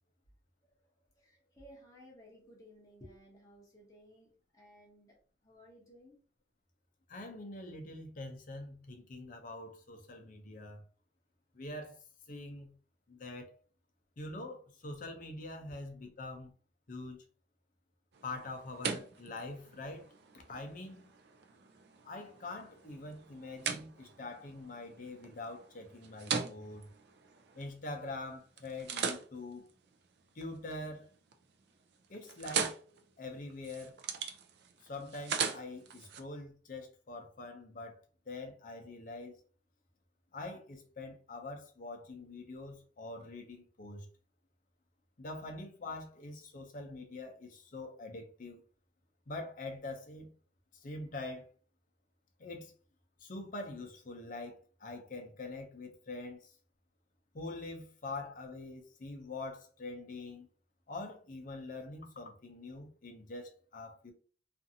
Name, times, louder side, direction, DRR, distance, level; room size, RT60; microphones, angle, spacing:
voice 1, 1.1-6.2, equal, 20° left, 0.8 m, -58 dB
voice 2, 7.1-10.8 11.5-12.0 12.3-12.7 13.1-13.5 14.2-16.5 16.9-17.2 18.2-20.1 20.3-21.0 22.0-26.9 27.5-29.6 30.4-31.1 32.1-32.7 33.2-33.9 34.8-38.0 38.3-39.3 40.3-44.1 45.2-48.6 49.3-50.3 50.7-51.5 52.4-52.7 53.2-56.5 57.3-60.5 60.9-64.1, left 2 dB, 50° left, 0.6 m, -44 dB
Laptop Shut, 18.1-28.1 28.6-30.8 31.2-31.6 31.9-36.2, right 6 dB, 60° right, 0.4 m, -41 dB
2.5 x 2.5 x 2.6 m
head